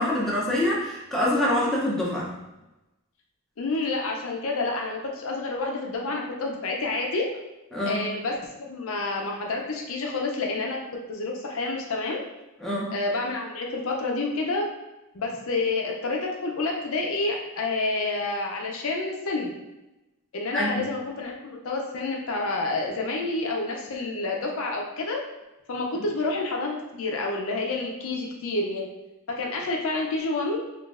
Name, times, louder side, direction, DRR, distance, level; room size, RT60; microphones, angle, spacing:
voice 1, 0.0-2.3 7.7-8.0 12.6-12.9 20.5-20.9 25.9-26.0, left 1 dB, ahead, -6 dB, 0.6 m, -25 dB
voice 2, 3.6-7.3 7.9-10.8 11.1-12.2 12.9-14.7 15.1-19.5 20.3-25.2 25.7-28.9 29.3-30.6, left 3 dB, 65° left, 0 dB, 0.5 m, -29 dB
3.8 x 2.4 x 2.4 m, 0.99 s
head